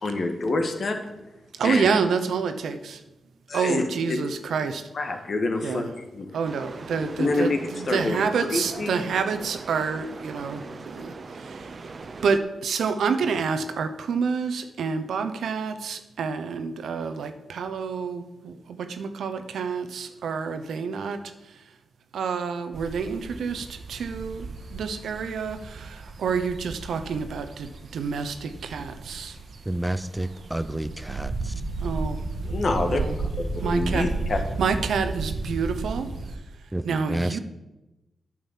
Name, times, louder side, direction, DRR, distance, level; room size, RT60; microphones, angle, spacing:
voice 1, 0.0-1.0 1.6-1.9 3.5-4.2 4.6-4.7 4.9-6.3 7.2-8.2 8.5-9.0 32.4-33.0 33.4-34.4, left 3 dB, 55° left, 5 dB, 1.6 m, -27 dB
voice 2, 1.6-3.0 3.5-4.8 5.6-5.9 6.3-7.5 7.9-11.1 11.5-11.6 12.2-21.2 22.1-24.5 24.7-29.3 31.8-32.2 32.9-33.1 33.6-34.1 34.6-36.1 36.8-37.4, right 5 dB, 85° right, 9 dB, 0.9 m, -28 dB
sound 1, 6.4-12.4, right 4 dB, 50° right, 0.9 m, -40 dB
sound 2, 22.7-36.4, right 3 dB, 70° right, 1.3 m, -34 dB
voice 3, 29.7-31.5 36.7-37.4, right 1 dB, 10° right, 12 dB, 0.5 m, -30 dB
9.3 x 6.3 x 7.4 m, 1.0 s
cardioid pair, 75°, 0 cm